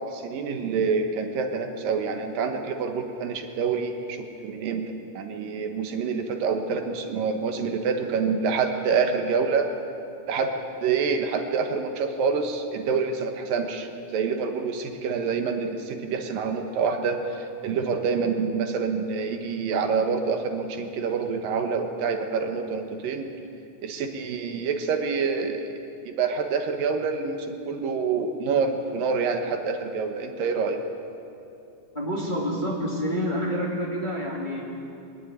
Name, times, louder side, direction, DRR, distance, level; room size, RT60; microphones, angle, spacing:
voice 1, 0.0-9.8 10.3-10.5 10.8-23.3 23.8-25.7 26.1-30.8, right 5 dB, 80° right, 5 dB, 3.0 m, -27 dB
voice 2, 31.9-34.6, equal, 15° left, -3 dB, 2.5 m, -28 dB
21.5 x 13.0 x 9.8 m, 2.7 s
omnidirectional pair, 3.9 m